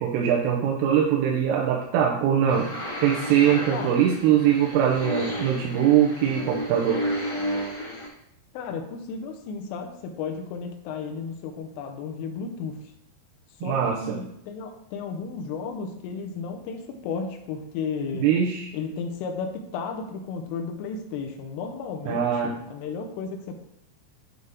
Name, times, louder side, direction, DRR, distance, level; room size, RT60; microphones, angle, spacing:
voice 1, 0.0-2.7 3.0-7.0 13.6-14.2 18.1-18.7 22.1-22.5, right 9 dB, 90° right, -2 dB, 3.3 m, -22 dB
sound 1, 2.5-8.1, equal, 35° left, 1.5 m, -32 dB
voice 2, 8.5-12.8 13.6-18.3 18.7-23.6, left 5 dB, 85° left, 4 dB, 3.3 m, -34 dB
9.5 x 4.0 x 3.6 m, 0.77 s
omnidirectional pair, 5.8 m